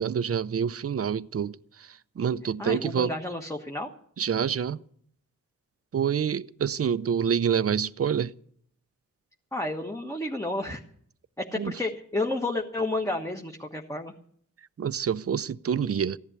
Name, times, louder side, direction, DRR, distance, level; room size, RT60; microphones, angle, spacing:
voice 1, 0.0-3.1 4.2-4.8 5.9-8.3 11.6-11.7 14.8-16.2, right 7 dB, 45° right, 0.6 m, -27 dB
voice 2, 2.6-3.9 9.5-10.8 11.4-14.1, left 2 dB, 10° left, 1.3 m, -31 dB
15.0 x 11.0 x 8.1 m
wide cardioid pair, 80°, 32 cm